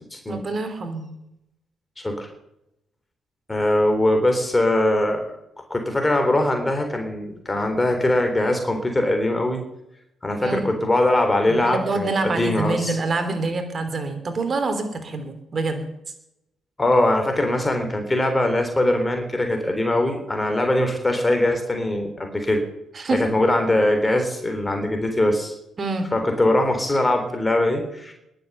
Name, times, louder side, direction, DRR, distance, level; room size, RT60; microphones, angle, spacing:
voice 1, 0.3-1.1 10.4-10.7 11.5-15.8 22.9-23.3 25.8-26.1, right 3 dB, 40° right, 8 dB, 3.1 m, -26 dB
voice 2, 3.5-5.2 5.7-9.6 10.2-13.0 16.8-22.6 23.3-25.5 26.1-28.1, left 1 dB, 20° left, 4 dB, 3.7 m, -21 dB
21.0 x 7.8 x 6.9 m, 0.83 s
figure-of-eight pair, 45°, 0 cm